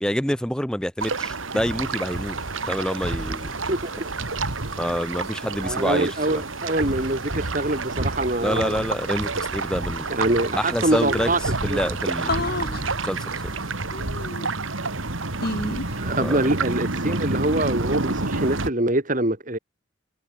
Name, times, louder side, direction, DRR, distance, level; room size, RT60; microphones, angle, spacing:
voice 1, 0.0-2.4 2.7-3.5 4.8-6.1 8.4-10.1 10.5-13.2 13.4-13.5 16.2-16.4, equal, 5° left, 0.8 m, -27 dB
sound 1, 1.0-18.7, right 3 dB, 80° right, 2.6 m, -29 dB
sound 2, 1.9-13.7, left 2 dB, 20° left, 6.5 m, -51 dB
voice 2, 3.7-4.1 5.6-8.9 10.1-11.4 11.7-11.8 15.9-19.6, right 1 dB, 40° right, 2.6 m, -24 dB
sound 3, 10.2-10.3 10.5-10.6 10.9-11.5 12.3-12.8 13.9-14.8 15.4-16.0, left 2 dB, 50° left, 2.7 m, -30 dB
head